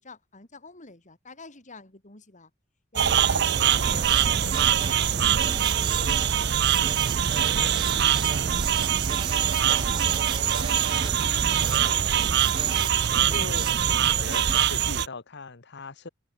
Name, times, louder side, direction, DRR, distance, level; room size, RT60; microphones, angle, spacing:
voice 1, 0.0-2.5 2.9-7.0 7.3-9.2 9.6-12.3, left 3 dB, 40° left, 4.4 m, -47 dB
sound 1, 3.0-15.1, right 9 dB, 60° right, 0.6 m, -23 dB
Drum kit, 3.7-14.6, right 4 dB, 25° right, 0.4 m, -36 dB
voice 2, 13.3-13.7 14.2-16.1, left 3 dB, 60° left, 1.4 m, -38 dB
head